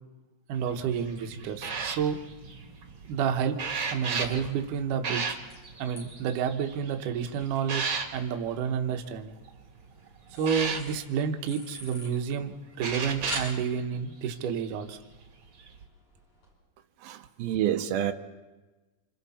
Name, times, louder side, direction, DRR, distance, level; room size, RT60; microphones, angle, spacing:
voice 1, 0.5-2.2 3.1-3.6 3.9-5.4 5.8-7.8 8.1-9.3 10.3-12.5 12.8-15.0, right 7 dB, 70° right, 4 dB, 2.5 m, -30 dB
sound 1, 0.6-9.0 9.5-9.8 10.4-10.8 12.1-12.2 12.8-13.5 14.5-14.7 15.6-15.8, right 5 dB, 40° right, 2.3 m, -35 dB
sound 2, 2.4-16.5, left 1 dB, 45° left, 8.9 m, -50 dB
voice 2, 17.0-18.1, right 11 dB, 85° right, 6 dB, 2.7 m, -28 dB
28.0 x 27.5 x 4.3 m, 1.2 s
omnidirectional pair, 4.2 m